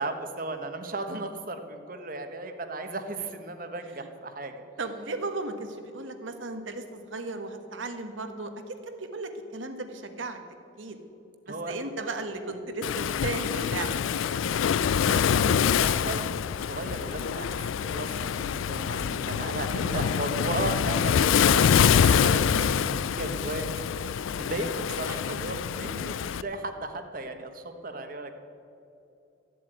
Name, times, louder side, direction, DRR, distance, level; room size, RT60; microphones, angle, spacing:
voice 1, 0.0-4.5 11.5-12.2 15.1-23.7 23.9-28.3, right 2 dB, 45° right, 7 dB, 1.2 m, -36 dB
voice 2, 4.8-10.4 10.8-11.0 11.5-14.3 15.9-16.1 18.9-19.2 22.5-22.7, right 2 dB, 80° right, 7 dB, 1.4 m, -36 dB
Waves surf, 12.8-26.4, left 7 dB, 80° left, 0.4 m, -25 dB
14.0 x 7.6 x 9.2 m, 2.8 s
head